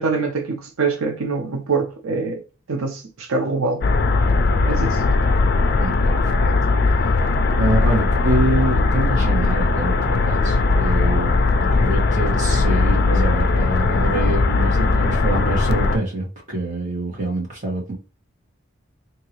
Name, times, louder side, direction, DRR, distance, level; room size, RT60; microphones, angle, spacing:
voice 1, 0.0-2.4 2.7-5.0, right 4 dB, 90° right, 0.6 m, -25 dB
sound 1, 3.8-16.0, left 3 dB, 50° left, 0.4 m, -18 dB
voice 2, 5.8-6.5 7.5-11.3 11.8-17.9, right 2 dB, 35° right, 1.6 m, -25 dB
3.8 x 2.8 x 3.0 m
head